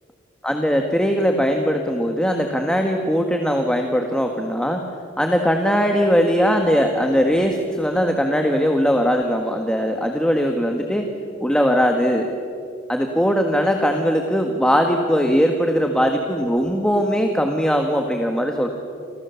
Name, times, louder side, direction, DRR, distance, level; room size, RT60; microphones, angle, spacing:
voice 1, 0.4-4.8 5.2-11.1 11.4-12.3 12.9-18.7, equal, 5° left, 3 dB, 1.7 m, -20 dB
29.5 x 27.0 x 7.1 m, 2.5 s
head